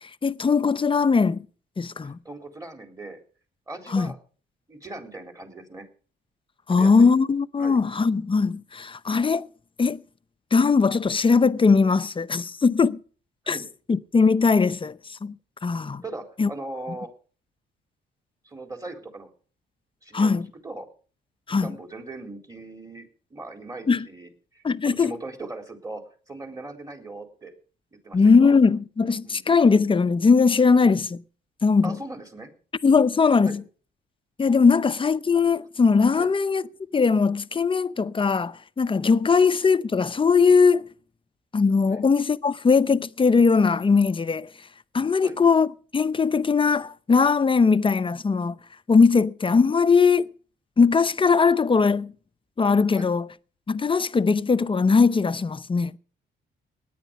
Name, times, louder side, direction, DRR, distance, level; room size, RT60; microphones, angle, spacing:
voice 1, 0.0-1.4 1.8-2.2 3.9-4.1 6.7-9.5 9.8-10.0 10.5-13.0 13.5-13.6 13.9-15.3 15.6-16.0 16.4-16.5 20.1-20.5 21.5-21.7 23.9-24.1 24.6-25.1 28.1-31.2 31.6-32.0 32.8-33.6 34.4-36.6 36.9-40.9 41.5-44.5 44.9-48.6 48.9-50.3 50.8-52.1 52.6-53.3 53.7-56.0, left 5 dB, 25° left, 0.8 m, -20 dB
voice 2, 2.0-3.2 3.7-4.2 4.7-5.8 6.7-7.1 7.6-7.8 13.4-13.7 16.0-17.1 18.4-19.3 20.0-20.4 20.6-20.9 21.6-26.0 26.3-27.5 28.0-28.5 29.2-29.4 31.8-32.5 33.4-33.6 36.2-36.3 41.9-42.0 45.2-45.4 52.9-53.1, right 2 dB, 15° right, 4.1 m, -39 dB
18.5 x 10.5 x 5.4 m
cardioid pair, 90°, 20 cm